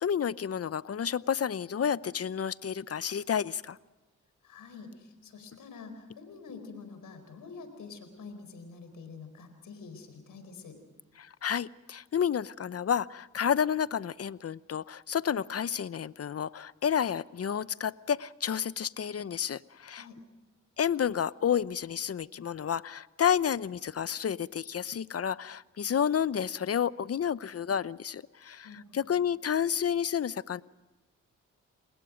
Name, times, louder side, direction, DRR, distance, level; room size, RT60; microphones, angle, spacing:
voice 1, 0.0-3.8 11.2-20.1 20.8-30.6, left 8 dB, 50° left, 17 dB, 0.8 m, -30 dB
voice 2, 4.4-10.8 19.9-20.2 28.6-29.2, left 4 dB, 85° left, 9 dB, 4.5 m, -47 dB
29.5 x 21.0 x 5.1 m, 1.2 s
cardioid pair, 65°, 32 cm